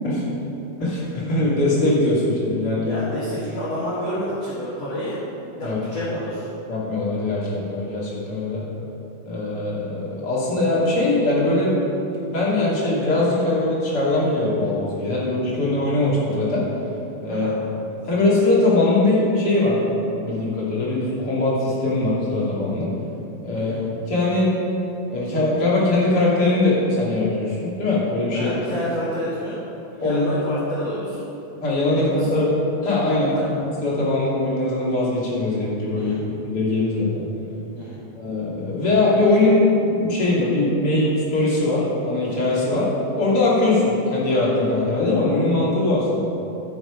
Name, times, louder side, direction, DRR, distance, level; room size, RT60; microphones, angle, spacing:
voice 1, 0.8-3.0 5.6-5.8 6.7-8.6 9.2-11.8 12.2-16.7 17.2-17.5 18.0-19.8 20.2-22.9 23.4-23.7 24.1-24.5 25.1-28.5 30.0-30.2 31.6-32.5 32.8-33.4 33.8-37.2 38.2-42.9 43.1-46.2, left 2 dB, 30° left, -7 dB, 2.3 m, -21 dB
voice 2, 2.8-5.2 5.6-6.5 17.3-17.5 23.5-23.8 28.3-29.5 30.0-31.3 31.9-32.0 33.2-33.5 35.9-36.2 37.7-38.0, equal, 50° left, -9 dB, 2.2 m, -29 dB
14.0 x 6.1 x 5.1 m, 2.9 s
omnidirectional pair, 4.9 m